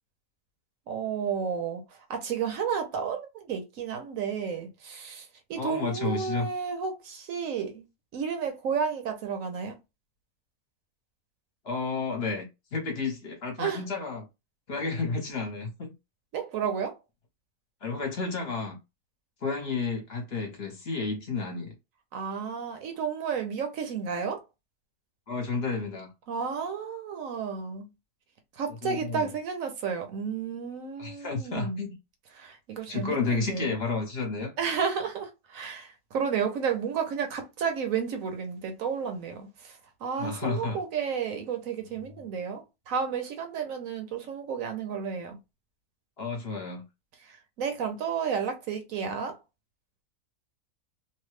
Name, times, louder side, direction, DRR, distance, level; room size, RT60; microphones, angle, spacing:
voice 1, 0.9-1.8 2.1-7.8 8.1-9.8 13.6-13.8 16.3-17.0 22.1-24.4 26.3-27.9 28.5-31.9 32.3-33.8 34.6-45.4 47.2-49.4, right 6 dB, 70° right, 1.0 m, -32 dB
voice 2, 5.6-6.5 11.6-14.2 14.7-15.9 17.8-18.8 19.4-21.7 25.3-26.1 28.8-29.3 31.0-31.9 32.9-34.5 40.2-40.8 42.0-42.1 46.2-46.8, left 4 dB, 50° left, 0.9 m, -31 dB
2.8 x 2.2 x 3.1 m
omnidirectional pair, 1.5 m